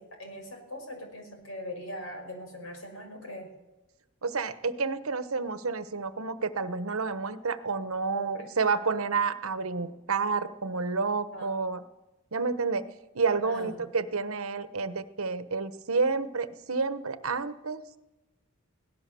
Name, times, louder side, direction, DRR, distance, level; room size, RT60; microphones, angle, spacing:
voice 1, 0.0-3.5 8.1-8.5 11.3-11.5 13.4-13.7, equal, 70° left, 4 dB, 5.7 m, -41 dB
voice 2, 4.2-11.8 12.3-12.9 13.1-18.0, right 4 dB, 80° right, 12 dB, 1.1 m, -30 dB
24.0 x 17.5 x 7.0 m, 1.0 s
head